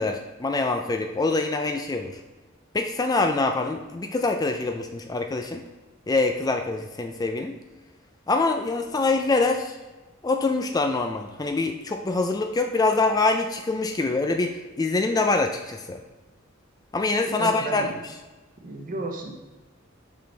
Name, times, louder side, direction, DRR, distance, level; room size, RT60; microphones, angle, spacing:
voice 1, 0.0-2.2 2.7-5.6 6.1-7.6 8.3-9.8 10.2-16.0 16.9-17.9, left 3 dB, 20° left, 4 dB, 0.4 m, -25 dB
voice 2, 17.3-17.9 18.6-19.3, right 2 dB, 45° right, 2 dB, 1.0 m, -32 dB
5.8 x 5.3 x 3.3 m, 1.2 s
head